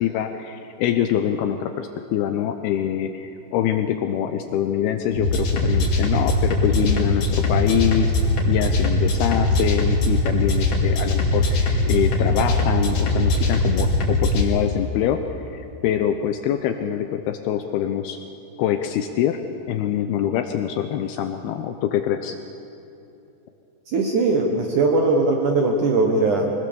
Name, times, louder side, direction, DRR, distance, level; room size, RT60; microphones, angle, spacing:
voice 1, 0.0-8.1 8.5-15.2 15.5-18.2 18.6-19.4 19.7-22.4, left 10 dB, 90° left, 7 dB, 2.2 m, -24 dB
sound 1, 5.1-14.4, left 2 dB, 40° left, 2.9 m, -21 dB
voice 2, 23.9-26.5, right 3 dB, 65° right, 1 dB, 2.0 m, -20 dB
24.0 x 19.0 x 7.0 m, 2.9 s
omnidirectional pair, 5.4 m